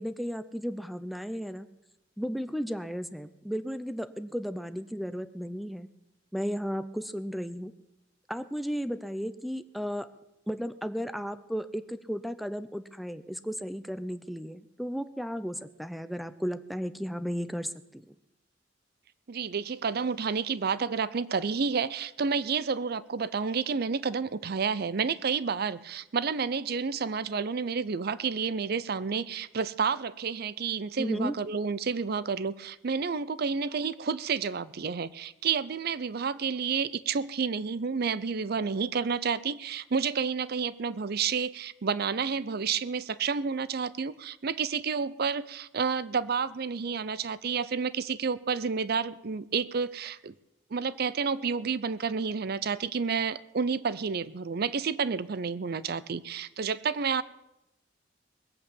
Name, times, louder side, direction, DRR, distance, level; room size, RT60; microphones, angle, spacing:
voice 1, 0.0-1.7 2.2-5.9 6.3-7.7 8.3-10.1 10.5-18.1 31.0-31.3, equal, ahead, 13 dB, 0.6 m, -34 dB
voice 2, 19.3-50.3 50.7-57.2, right 5 dB, 55° right, 17 dB, 0.5 m, -30 dB
20.5 x 8.2 x 7.0 m, 0.87 s
head